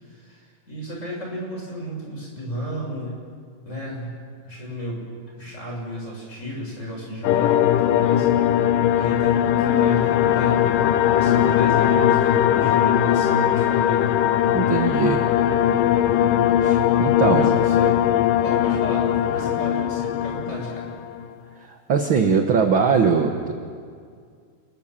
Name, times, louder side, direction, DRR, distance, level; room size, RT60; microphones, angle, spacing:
voice 1, 0.0-3.2 3.6-5.1 5.3-8.3 8.9-14.2 17.2-18.0 18.4-21.0, equal, 20° left, -2 dB, 6.7 m, -33 dB
sound 1, 7.2-21.2, left 11 dB, 80° left, 2.4 m, -20 dB
voice 2, 14.5-15.2 16.6-17.5 19.4-19.5 21.7-23.5, right 5 dB, 55° right, 5 dB, 1.5 m, -21 dB
29.0 x 21.0 x 7.5 m, 2.1 s
omnidirectional pair, 3.8 m